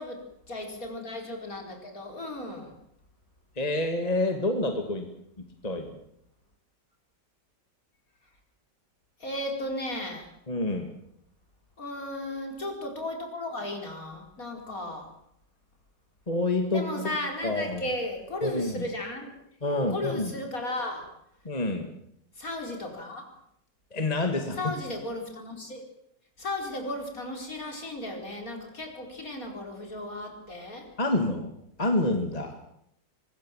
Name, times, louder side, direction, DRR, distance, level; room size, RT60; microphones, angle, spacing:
voice 1, 0.0-2.7 9.2-10.3 11.8-15.1 16.7-19.3 19.8-21.1 22.4-23.3 24.6-25.8 26.4-30.9, left 1 dB, 50° left, 3 dB, 5.1 m, -35 dB
voice 2, 3.6-5.1 5.6-5.9 10.5-10.9 16.3-17.1 17.4-17.8 18.4-18.7 19.6-20.3 21.5-21.9 23.9-24.7 31.0-31.5 31.8-32.5, left 2 dB, 20° left, 5 dB, 2.3 m, -27 dB
24.5 x 21.0 x 7.5 m, 0.73 s
omnidirectional pair, 1.9 m